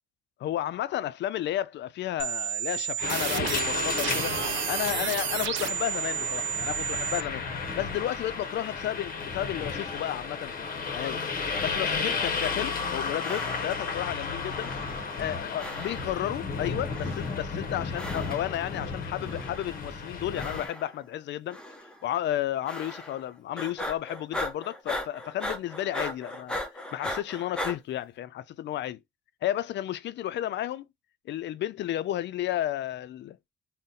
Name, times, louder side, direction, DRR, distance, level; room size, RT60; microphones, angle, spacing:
voice 1, 0.4-4.3 4.7-7.4 7.8-11.2 11.6-14.7 15.2-21.6 22.0-26.6 26.9-29.0 29.4-30.8 31.3-33.5, left 12 dB, 65° left, 0.4 m, -32 dB
sound 1, 2.2-7.2, right 11 dB, 70° right, 0.4 m, -31 dB
sound 2, 3.0-20.7, left 5 dB, 45° left, 0.8 m, -33 dB
sound 3, 12.2-12.9 13.2-14.0 14.6-15.3 15.6-16.3 16.9-17.5 17.9-18.6 19.2-19.8 20.3-21.1 21.5-22.0 22.7-23.3 23.6-27.8, left 1 dB, 5° left, 0.7 m, -38 dB
2.6 x 2.1 x 3.7 m
cardioid pair, 90°, 20 cm